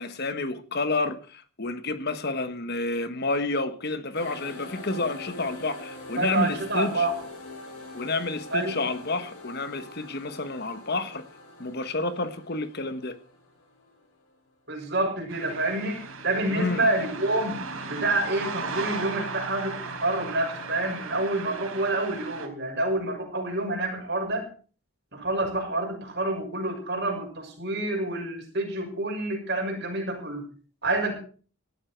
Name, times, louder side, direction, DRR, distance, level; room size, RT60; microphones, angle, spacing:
voice 1, 0.0-7.1 7.9-11.3 11.6-13.2 16.5-16.9, left 2 dB, 45° left, 1.4 m, -30 dB
sound 1, 4.1-14.5, left 2 dB, 85° left, 6.5 m, -44 dB
voice 2, 6.2-7.2 8.5-8.8 14.7-17.6 17.9-24.5 25.1-30.4 30.8-31.1, right 2 dB, 50° right, 6.8 m, -28 dB
sound 2, 15.3-22.5, right 4 dB, 70° right, 4.1 m, -36 dB
18.5 x 13.0 x 4.6 m
head